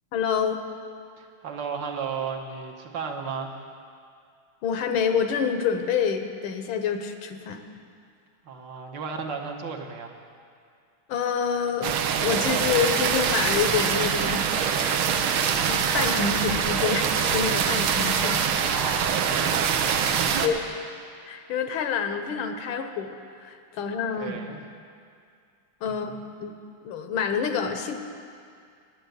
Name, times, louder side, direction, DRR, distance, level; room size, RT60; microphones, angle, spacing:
voice 1, 0.1-0.6 4.6-7.6 11.1-14.5 14.8-15.1 15.6-18.4 19.5-19.6 20.4-20.6 21.2-24.4 25.8-26.5 26.8-28.0, left 6 dB, 85° left, 7 dB, 1.7 m, -27 dB
voice 2, 1.2-3.6 8.4-10.1 18.7-20.8 24.2-24.6 25.9-26.2, right 5 dB, 65° right, 2 dB, 1.6 m, -34 dB
sound 1, 11.8-20.5, right 7 dB, 90° right, 1.6 m, -24 dB
10.5 x 9.4 x 8.0 m, 2.3 s
omnidirectional pair, 2.2 m